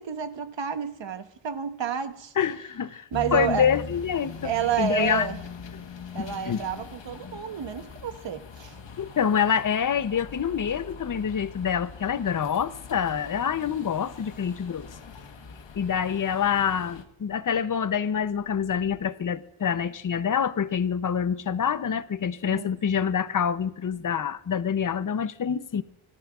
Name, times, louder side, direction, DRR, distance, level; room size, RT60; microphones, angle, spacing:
voice 1, 0.0-2.3 3.1-3.7 4.4-5.4 6.1-8.8 22.4-22.7, right 8 dB, 65° right, 1.1 m, -30 dB
voice 2, 2.4-3.0 3.3-4.5 4.8-5.3 6.2-6.6 9.0-14.9 15.8-25.8, left 7 dB, 40° left, 0.7 m, -26 dB
sound 1, 3.1-17.0, left 5 dB, 65° left, 1.4 m, -42 dB
26.0 x 13.0 x 2.4 m
wide cardioid pair, 95°, 48 cm